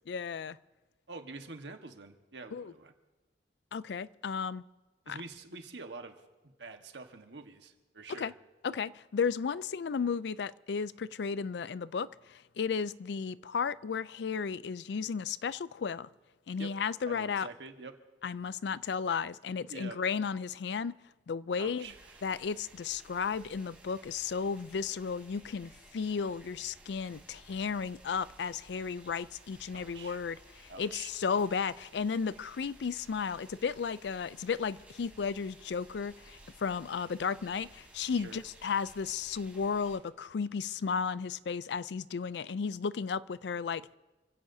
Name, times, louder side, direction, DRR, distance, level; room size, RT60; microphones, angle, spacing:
voice 1, 0.1-0.6 2.5-2.7 3.7-4.6 5.1-5.2 8.2-8.3 8.6-16.1 16.5-17.5 18.2-21.0 21.3-21.9 22.2-43.9, left 6 dB, 70° left, 0.4 m, -34 dB
voice 2, 1.1-2.9 5.1-6.2 6.4-8.3 16.6-16.7 17.1-18.0 19.5-20.0 21.6-22.2 29.7-30.2 30.7-31.1 38.1-38.4, right 3 dB, 85° right, 1.4 m, -46 dB
sound 1, 21.8-40.0, right 1 dB, 10° right, 3.4 m, -57 dB
28.5 x 16.0 x 2.7 m
head